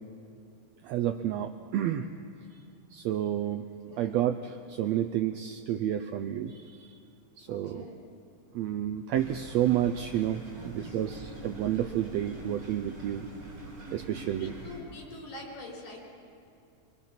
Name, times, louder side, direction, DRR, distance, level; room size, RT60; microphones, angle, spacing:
voice 1, 0.8-2.1 2.9-3.6 4.0-6.9 7.4-7.9 8.5-13.3 13.9-14.5, right 11 dB, 80° right, 8 dB, 1.5 m, -30 dB
voice 2, 7.5-8.0 10.1-10.2 10.5-11.0 14.4-16.0, left 2 dB, 70° left, -1 dB, 6.0 m, -45 dB
sound 1, 9.1-14.8, right 2 dB, 60° right, 6.7 m, -44 dB
24.0 x 24.0 x 5.9 m, 2.4 s
omnidirectional pair, 3.7 m